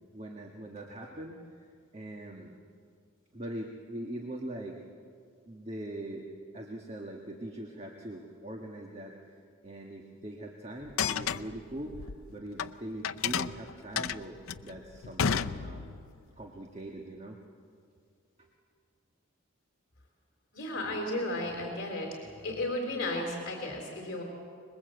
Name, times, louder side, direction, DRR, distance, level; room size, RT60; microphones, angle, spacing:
voice 1, 0.1-1.7 1.9-2.5 3.3-4.8 5.5-6.2 6.5-9.4 9.6-12.0 12.3-16.0 16.4-17.4 18.4-18.5, right 1 dB, 30° right, 1 dB, 1.6 m, -42 dB
sound 1, 10.8-12.7 13.0-16.1, left 7 dB, 75° left, 0.6 m, -32 dB
voice 2, 20.5-22.2 22.4-24.2, left 1 dB, 50° left, 0 dB, 3.6 m, -34 dB
26.0 x 21.0 x 8.0 m, 2.3 s
head